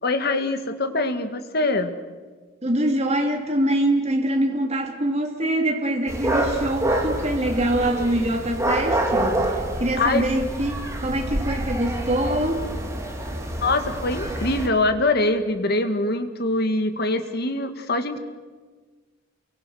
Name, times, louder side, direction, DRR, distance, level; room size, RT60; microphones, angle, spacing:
voice 1, 0.0-1.9 10.0-10.2 13.6-18.2, left 2 dB, 55° left, 8 dB, 2.1 m, -23 dB
voice 2, 2.6-9.5 9.8-12.7, right 1 dB, 35° right, 2 dB, 3.0 m, -24 dB
sound 1, 6.1-14.7, right 1 dB, 15° right, 3.3 m, -27 dB
29.0 x 23.5 x 6.5 m, 1.4 s
head